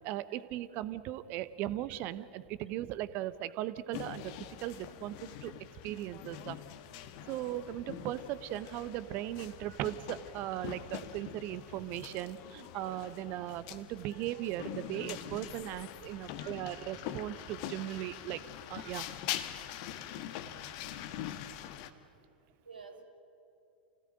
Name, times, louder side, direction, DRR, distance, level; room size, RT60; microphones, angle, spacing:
voice 1, 0.0-5.1 5.4-5.5 5.8-6.6 6.9-7.0 7.3-18.4 18.7-19.1 20.6-20.7, right 13 dB, 40° right, 16 dB, 1.0 m, -38 dB
sound 1, 3.9-21.9, left 11 dB, 45° left, 1.4 m, -44 dB
voice 2, 22.6-23.0, right 5 dB, 80° right, 4 dB, 3.0 m, -52 dB
28.0 x 17.5 x 9.0 m, 2.8 s
figure-of-eight pair, 95°, 5 cm